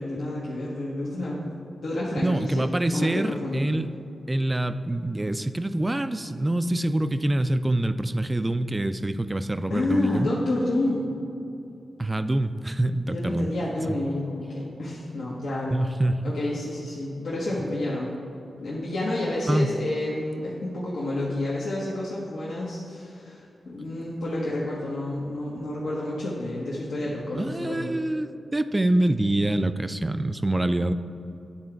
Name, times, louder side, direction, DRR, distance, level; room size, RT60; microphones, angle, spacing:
voice 1, 0.0-1.4 1.8-3.7 9.7-11.1 13.1-15.7 16.2-18.2 18.6-27.9, left 1 dB, 80° left, -6 dB, 1.0 m, -29 dB
voice 2, 2.2-3.9 4.3-10.3 12.0-13.5 13.9-14.0 15.7-16.4 19.5-19.7 27.3-30.9, right 1 dB, 25° right, 11 dB, 0.4 m, -25 dB
9.7 x 3.7 x 4.5 m, 2.7 s
cardioid pair, 45°, 0 cm